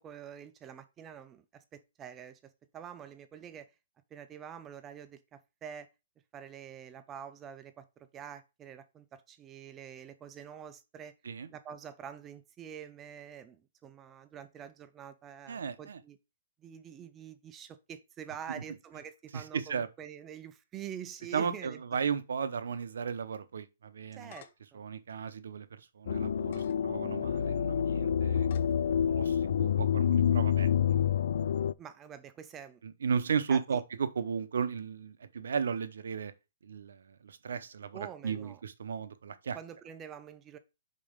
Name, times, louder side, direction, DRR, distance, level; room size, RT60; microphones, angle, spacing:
voice 1, 0.0-3.7 4.1-5.9 6.3-11.1 11.5-16.2 16.6-21.8 24.1-24.8 31.8-32.8 33.5-33.8 37.9-38.6 39.5-40.6, right 8 dB, 15° right, 0.5 m, -46 dB
voice 2, 15.5-16.0 19.3-19.9 21.3-24.3 24.7-28.5 29.1-31.2 32.8-36.3 36.6-39.6, right 6 dB, 75° right, 0.8 m, -35 dB
sound 1, 23.9-24.7 25.3-25.4 26.4-26.8 27.4-27.5 28.4-28.8, left 8 dB, 40° left, 0.7 m, -52 dB
sound 2, 26.1-31.7, left 8 dB, 55° left, 0.3 m, -28 dB
5.3 x 4.2 x 5.1 m
hypercardioid pair, 175°, 0 cm